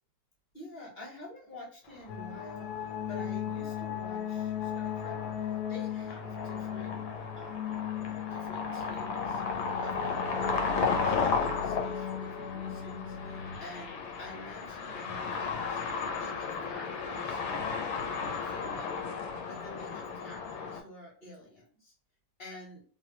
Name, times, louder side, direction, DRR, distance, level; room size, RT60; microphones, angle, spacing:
voice 1, 0.5-7.0 7.4-7.9 8.3-15.8 16.1-17.9 18.4-19.0 19.5-21.9 22.4-22.8, left 1 dB, 40° left, -3 dB, 0.7 m, -49 dB
sound 1, 2.0-20.8, left 5 dB, 90° left, 1.3 m, -35 dB
sound 2, 2.1-13.6, left 8 dB, 70° left, 1.0 m, -37 dB
3.1 x 2.0 x 2.9 m, 0.42 s
omnidirectional pair, 2.1 m